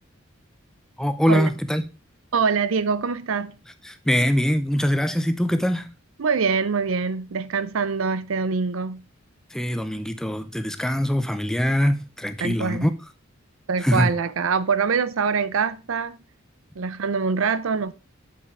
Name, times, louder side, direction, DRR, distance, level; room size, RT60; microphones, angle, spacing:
voice 1, 1.0-1.8 3.8-5.9 9.5-12.9 13.8-14.1, equal, 5° left, 0.5 m, -23 dB
voice 2, 2.3-3.6 6.2-9.0 12.4-12.9 13.7-16.2 16.8-17.9, right 5 dB, 80° right, 0.6 m, -24 dB
6.9 x 5.7 x 4.8 m
head